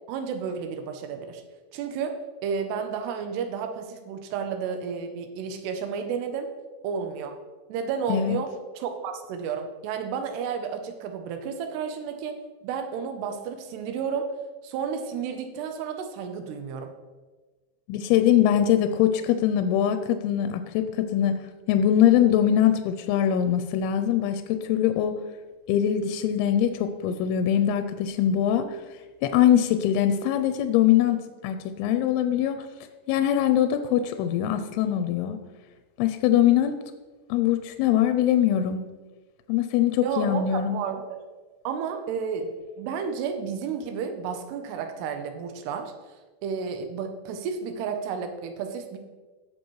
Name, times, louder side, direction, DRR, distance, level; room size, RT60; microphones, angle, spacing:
voice 1, 0.1-1.4 1.7-6.5 6.8-7.4 7.7-8.5 8.8-14.3 14.6-16.9 40.0-41.2 41.6-45.9 46.4-49.0, right 6 dB, 85° right, 6 dB, 2.9 m, -32 dB
voice 2, 17.9-25.2 25.7-28.7 29.2-32.6 33.1-35.4 36.0-36.7 37.3-38.9 39.5-40.8, left 10 dB, 85° left, 9 dB, 2.5 m, -22 dB
16.0 x 6.7 x 3.1 m, 1.3 s
omnidirectional pair, 4.7 m